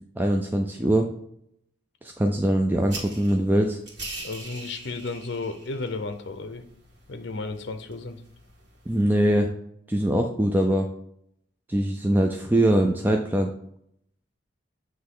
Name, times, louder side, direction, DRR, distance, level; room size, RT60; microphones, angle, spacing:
voice 1, 0.2-1.1 2.0-3.8 8.9-9.5 9.9-10.9 11.7-13.5, right 1 dB, 10° right, 3 dB, 0.3 m, -22 dB
sound 1, 2.8-9.0, right 2 dB, 60° right, 1.9 m, -43 dB
voice 2, 4.2-6.6 7.1-8.2, left 3 dB, 60° left, 8 dB, 0.6 m, -33 dB
8.0 x 3.2 x 3.7 m, 0.70 s
head